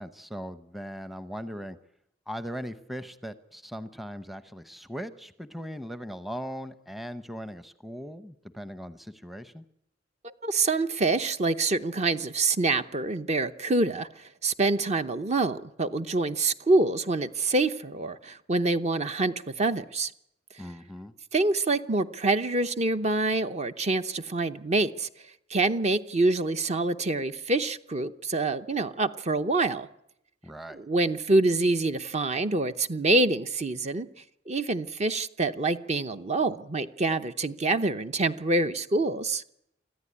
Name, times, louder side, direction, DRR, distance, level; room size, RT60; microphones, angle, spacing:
voice 1, 0.0-1.8 2.3-9.6 20.6-21.1 30.4-30.8, equal, ahead, 11 dB, 0.8 m, -39 dB
voice 2, 10.2-20.1 21.3-25.1 25.5-29.9 30.7-34.1 34.5-39.4, right 2 dB, 35° right, 10 dB, 0.8 m, -26 dB
25.5 x 14.5 x 9.7 m, 0.78 s
head